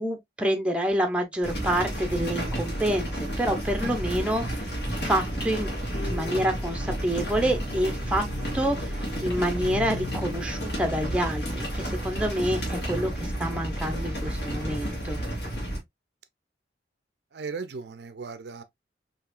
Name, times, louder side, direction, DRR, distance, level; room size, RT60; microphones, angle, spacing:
voice 1, 0.0-4.4 5.0-5.7 6.0-8.3 8.5-8.9 9.2-15.2, right 1 dB, 5° right, 0.6 m, -27 dB
sound 1, 1.4-15.8, right 1 dB, 60° left, 2.0 m, -31 dB
sound 2, 5.9-11.3, left 6 dB, 40° left, 0.4 m, -41 dB
voice 2, 17.3-18.6, right 4 dB, 65° right, 0.5 m, -37 dB
4.8 x 2.9 x 2.3 m
head